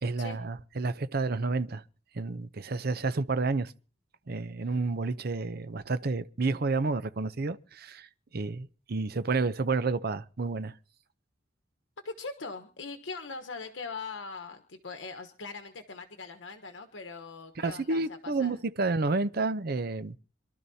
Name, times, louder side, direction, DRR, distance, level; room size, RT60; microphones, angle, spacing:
voice 1, 0.0-1.8 2.1-3.7 4.3-8.1 8.3-10.7 17.6-20.2, right 3 dB, 55° right, 0.7 m, -30 dB
voice 2, 12.0-18.6, left 4 dB, 80° left, 1.1 m, -41 dB
26.5 x 12.0 x 2.8 m
head